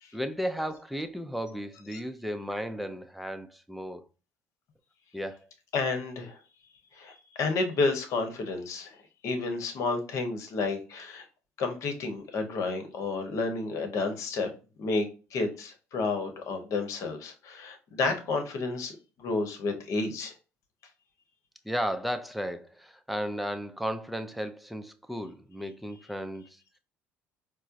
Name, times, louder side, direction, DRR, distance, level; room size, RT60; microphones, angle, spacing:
voice 1, 0.1-4.0 5.1-5.5 21.6-26.8, equal, ahead, 0.5 m, -34 dB
voice 2, 5.7-6.4 6.9-11.3 11.6-14.5 14.8-18.9 19.2-20.3, left 3 dB, 60° left, 0.9 m, -31 dB
4.4 x 2.0 x 2.5 m
hypercardioid pair, 70°, 6 cm